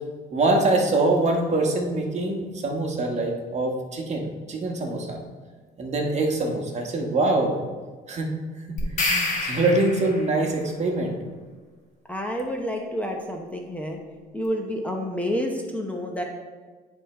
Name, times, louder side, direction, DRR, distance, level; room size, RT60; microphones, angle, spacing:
voice 1, 0.3-5.2 5.8-7.6 8.1-8.3 8.8-11.2, right 2 dB, 40° right, 2 dB, 1.2 m, -24 dB
sound 1, 8.8-10.4, left 2 dB, 50° left, 1.6 m, -27 dB
voice 2, 12.1-14.0 14.3-16.2, equal, 10° left, 1 dB, 0.8 m, -29 dB
9.7 x 3.5 x 4.3 m, 1.4 s
cardioid pair, 110°, 17 cm